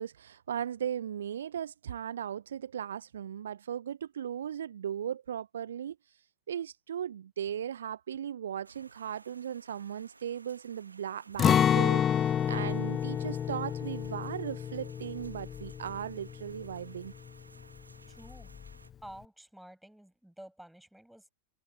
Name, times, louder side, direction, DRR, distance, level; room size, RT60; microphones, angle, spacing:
voice 1, 0.0-6.0 6.5-17.1, right 9 dB, 65° right, 1.0 m, -37 dB
sound 1, 8.6-18.9, right 3 dB, 80° right, 2.6 m, -58 dB
Acoustic guitar, 11.4-17.3 17.6-17.8 18.2-18.7, left 9 dB, 25° left, 0.6 m, -29 dB
voice 2, 18.1-18.5 19.0-21.3, right 1 dB, ahead, 7.2 m, -50 dB
figure-of-eight pair, 90°, 0 cm